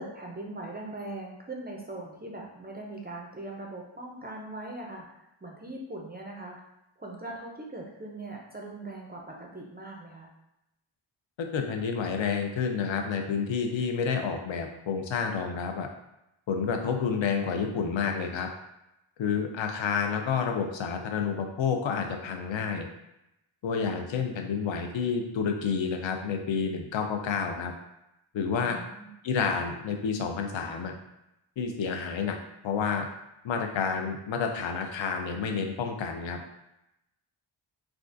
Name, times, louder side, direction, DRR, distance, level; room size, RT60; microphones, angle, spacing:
voice 1, 0.0-6.6 7.0-10.3 28.7-29.1, right 2 dB, 25° right, -1 dB, 0.3 m, -40 dB
voice 2, 11.4-15.9 16.5-18.5 19.2-22.9 23.6-27.7 28.3-28.8 29.2-30.9 31.6-32.4 32.6-33.1 33.4-36.4, left 6 dB, 70° left, 4 dB, 0.5 m, -29 dB
3.5 x 2.4 x 2.5 m, 0.86 s
wide cardioid pair, 165°, 48 cm